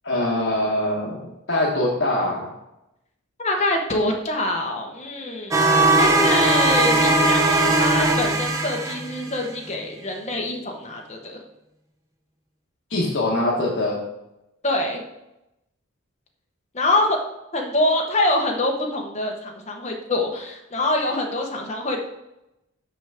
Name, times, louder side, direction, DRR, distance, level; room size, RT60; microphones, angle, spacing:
voice 1, 0.0-2.5 12.9-14.0, left 1 dB, 70° left, -4 dB, 1.2 m, -23 dB
voice 2, 3.4-11.4 14.6-15.0 16.7-17.2 17.5-22.1, left 1 dB, 35° left, 1 dB, 1.1 m, -25 dB
sound 1, 5.5-9.4, right 2 dB, 15° right, 0.6 m, -19 dB
6.3 x 6.0 x 3.5 m, 0.88 s
head